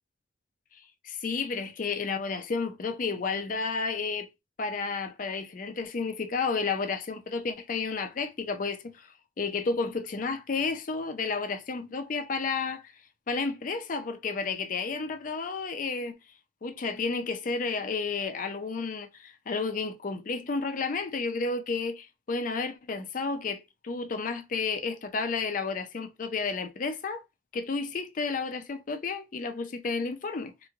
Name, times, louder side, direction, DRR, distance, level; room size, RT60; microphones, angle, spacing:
voice 1, 0.7-4.3 4.6-12.9 13.3-16.2 16.6-27.2 27.5-30.5, left 4 dB, 45° left, 0.4 m, -32 dB
3.0 x 2.2 x 3.5 m
head